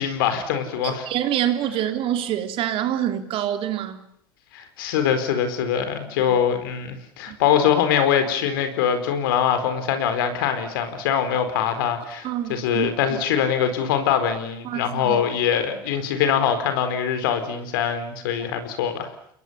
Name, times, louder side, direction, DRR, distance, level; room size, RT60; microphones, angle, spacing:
voice 1, 0.0-1.0 4.5-19.1, left 8 dB, 75° left, 4.5 m, -23 dB
voice 2, 0.8-4.0 7.3-7.4 12.2-13.2 14.6-15.2, right 11 dB, 55° right, 3.4 m, -26 dB
28.5 x 21.5 x 7.1 m
hypercardioid pair, 85°, 12 cm